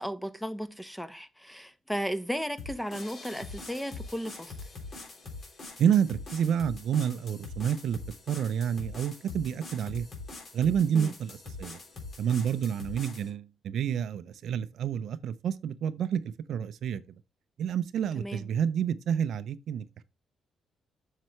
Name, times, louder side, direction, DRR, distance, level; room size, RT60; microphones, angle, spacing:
voice 1, 0.0-4.5 10.9-11.1 18.2-18.5, equal, 5° left, 1.0 m, -35 dB
sound 1, 2.6-13.3, left 3 dB, 45° left, 3.4 m, -43 dB
voice 2, 5.8-8.0 8.3-10.1 10.5-11.8 12.2-16.2 16.5-17.0 17.6-20.0, right 8 dB, 70° right, 0.5 m, -29 dB
7.5 x 6.6 x 3.1 m
cardioid pair, 90°, 0 cm